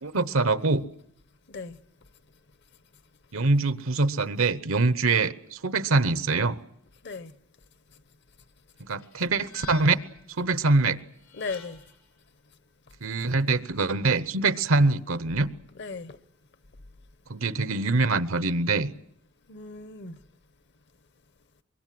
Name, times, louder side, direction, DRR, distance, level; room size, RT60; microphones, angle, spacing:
voice 1, 0.0-0.9 3.3-6.6 8.9-10.0 10.4-11.0 13.0-15.5 17.3-18.9, right 3 dB, 75° right, 1.0 m, -24 dB
voice 2, 1.5-1.8 7.0-7.3 11.4-11.8 15.8-16.2 19.5-20.2, left 4 dB, 55° left, 1.0 m, -36 dB
sound 1, 9.0-10.2 11.2-12.0, left 7 dB, 75° left, 4.0 m, -46 dB
24.5 x 22.5 x 7.7 m
head